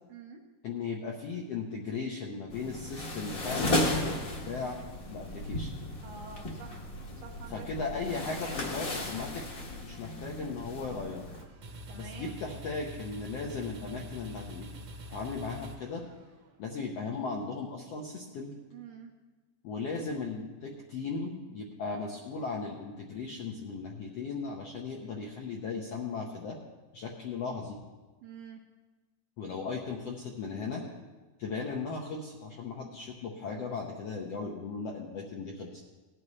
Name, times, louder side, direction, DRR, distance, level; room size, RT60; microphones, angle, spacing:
voice 1, 0.1-0.4 6.0-7.9 11.9-12.4 18.7-19.1 28.2-28.6, right 6 dB, 80° right, 1 dB, 1.4 m, -48 dB
voice 2, 0.6-4.8 5.1-5.7 7.5-9.4 9.8-11.2 11.9-14.7 15.1-16.0 16.6-18.5 19.6-26.6 26.9-27.8 29.4-30.8 31.4-35.8, left 4 dB, 80° left, -1 dB, 1.4 m, -37 dB
sound 1, 2.5-11.4, left 1 dB, 55° left, 0.9 m, -35 dB
sound 2, 11.3-16.5, equal, 60° right, 1.4 m, -45 dB
18.5 x 10.5 x 3.2 m, 1.2 s
omnidirectional pair, 4.2 m